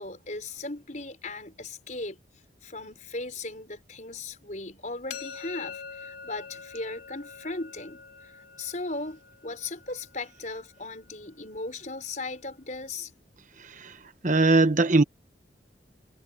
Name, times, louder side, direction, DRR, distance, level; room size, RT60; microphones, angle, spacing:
voice 1, 0.0-2.2 2.6-8.3 8.6-13.1, left 3 dB, 40° left, 5.3 m, -37 dB
sound 1, 5.1-10.9, left 6 dB, 70° left, 3.3 m, -44 dB
voice 2, 14.2-15.0, right 2 dB, 40° right, 1.1 m, -20 dB
head